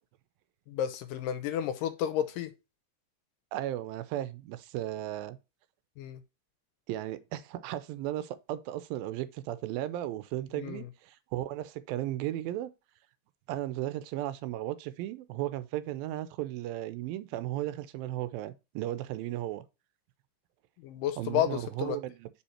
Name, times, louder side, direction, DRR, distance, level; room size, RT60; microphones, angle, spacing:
voice 1, 0.7-2.5 6.0-6.2 10.5-10.9 20.8-22.0, left 10 dB, 80° left, 2.2 m, -31 dB
voice 2, 3.5-5.4 6.9-12.7 13.5-19.6 21.2-22.3, right 14 dB, 85° right, 2.4 m, -35 dB
5.6 x 5.1 x 4.3 m
omnidirectional pair, 4.1 m